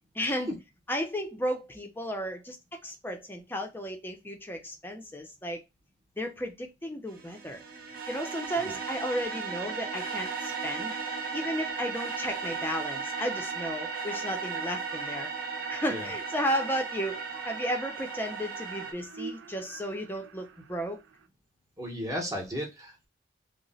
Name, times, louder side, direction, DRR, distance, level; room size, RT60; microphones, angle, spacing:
voice 1, 0.1-0.5 0.9-2.6 2.8-5.6 6.2-7.6 8.1-10.9 11.3-15.3 15.7-21.0, equal, 10° left, 0.5 m, -34 dB
sound 1, 7.1-18.9, right 5 dB, 50° right, 0.7 m, -36 dB
sound 2, 13.2-21.3, right 5 dB, 85° right, 0.5 m, -49 dB
voice 2, 21.8-23.1, equal, 15° right, 0.8 m, -34 dB
2.9 x 2.1 x 4.0 m
head